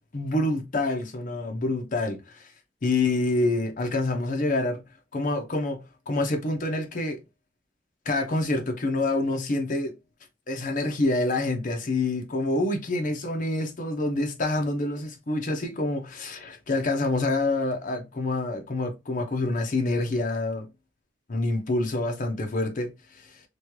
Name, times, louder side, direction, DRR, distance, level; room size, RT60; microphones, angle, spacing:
voice 1, 0.1-2.5 2.8-4.8 5.1-7.2 8.1-9.9 10.5-20.7 21.3-23.4, left 2 dB, 45° left, 0.6 m, -27 dB
3.1 x 2.2 x 2.9 m
head